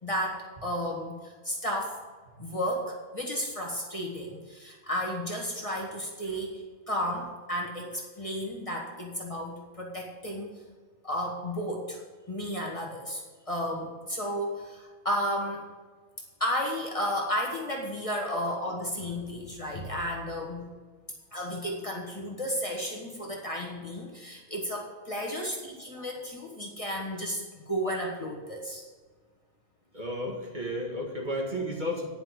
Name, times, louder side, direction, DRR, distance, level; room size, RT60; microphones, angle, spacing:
voice 1, 0.0-2.0 2.4-10.5 11.0-12.0 12.3-13.2 13.5-15.6 16.4-20.7 21.3-28.8, equal, 25° left, -1 dB, 1.8 m, -33 dB
voice 2, 29.9-32.1, equal, 40° right, -1 dB, 2.1 m, -32 dB
10.5 x 5.8 x 8.3 m, 1.4 s
omnidirectional pair, 1.3 m